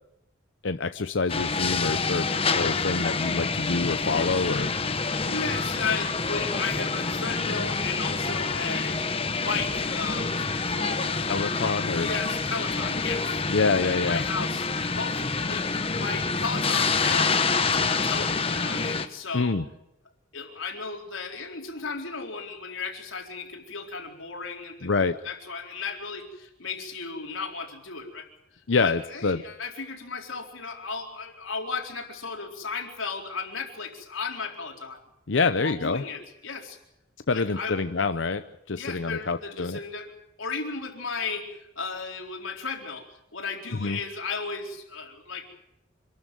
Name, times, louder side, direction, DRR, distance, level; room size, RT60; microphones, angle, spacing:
voice 1, 0.6-4.7 11.2-12.1 13.5-14.2 19.3-19.6 24.8-25.2 28.7-29.4 35.3-36.0 37.3-39.8 43.7-44.0, left 4 dB, 70° left, 9 dB, 0.7 m, -26 dB
sound 1, 1.3-19.1, left 4 dB, 30° left, 1.1 m, -27 dB
voice 2, 5.2-9.0 9.4-11.7 12.0-13.4 13.8-17.4 17.7-19.6 20.3-28.3 28.8-35.0 35.6-36.8 37.3-37.8 38.8-40.1 40.4-43.1 43.3-45.4, left 4 dB, 85° left, 1 dB, 4.3 m, -35 dB
26.5 x 13.0 x 9.3 m, 0.84 s
head